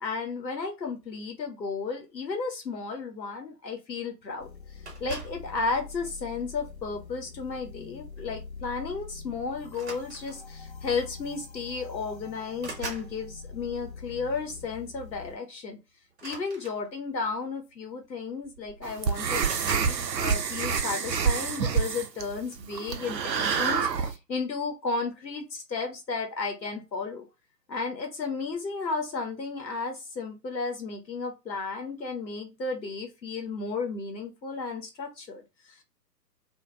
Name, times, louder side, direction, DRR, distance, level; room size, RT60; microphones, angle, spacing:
voice 1, 0.0-15.8 16.2-27.3 27.7-35.8, left 4 dB, 85° left, 3 dB, 0.8 m, -33 dB
sound 1, 4.4-15.4, left 5 dB, 45° left, 0.6 m, -44 dB
sound 2, 4.9-5.5 6.4-6.7 8.2-8.3 8.6-8.8 9.7-10.6 11.6-11.7 12.0-13.2 16.1-17.2 18.1-18.2 18.4-18.9 19.4-20.0, right 4 dB, 40° right, 0.8 m, -41 dB
sound 3, 18.8-24.2, right 6 dB, 85° right, 0.6 m, -27 dB
2.2 x 2.0 x 3.4 m, 0.27 s
figure-of-eight pair, 130°, 50 cm